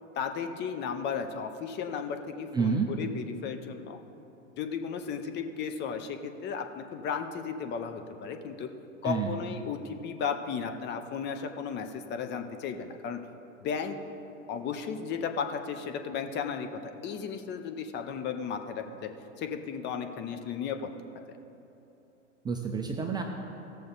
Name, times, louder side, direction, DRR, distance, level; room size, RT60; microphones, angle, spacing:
voice 1, 0.1-4.0 4.6-8.7 9.0-13.2 13.6-14.0 14.5-16.7 17.0-19.1 19.4-20.9, left 6 dB, 25° left, 7 dB, 0.7 m, -34 dB
voice 2, 2.5-2.9 9.0-9.3 22.4-23.2, right 5 dB, 10° right, 2 dB, 0.5 m, -29 dB
16.0 x 6.7 x 4.0 m, 2.9 s
figure-of-eight pair, 100°, 39 cm